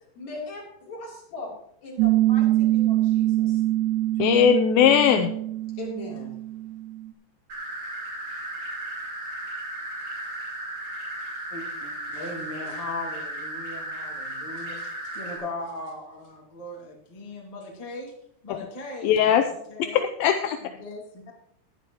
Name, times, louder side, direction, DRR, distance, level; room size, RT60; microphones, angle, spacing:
voice 1, 0.1-1.5 1.8-3.6 4.5-4.9 5.7-6.2, left 2 dB, 45° left, -4 dB, 4.6 m, -38 dB
Piano, 2.0-7.1, right 15 dB, 85° right, 3.1 m, -24 dB
voice 2, 4.2-5.3 19.0-19.5 19.9-20.6, left 8 dB, 80° left, 6 dB, 2.2 m, -19 dB
sound 1, 7.5-15.4, right 1 dB, 35° right, 3.7 m, -35 dB
voice 3, 11.5-18.1 18.4-20.0 20.6-21.3, left 2 dB, 25° left, -2 dB, 0.8 m, -39 dB
15.0 x 10.5 x 3.0 m, 0.70 s
omnidirectional pair, 4.7 m